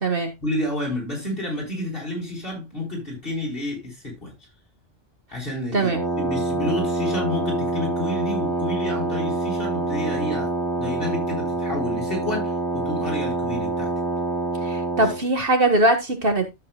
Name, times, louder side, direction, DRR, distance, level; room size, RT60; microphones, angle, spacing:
voice 1, 0.4-4.3 5.3-10.5 10.8-13.9, left 1 dB, 50° left, 4.7 m, -30 dB
Wind instrument woodwind instrument, 5.9-15.2, right 1 dB, ahead, 1.9 m, -26 dB
voice 2, 14.6-16.6, right 2 dB, 50° right, 1.8 m, -21 dB
13.0 x 7.4 x 2.3 m
omnidirectional pair, 1.2 m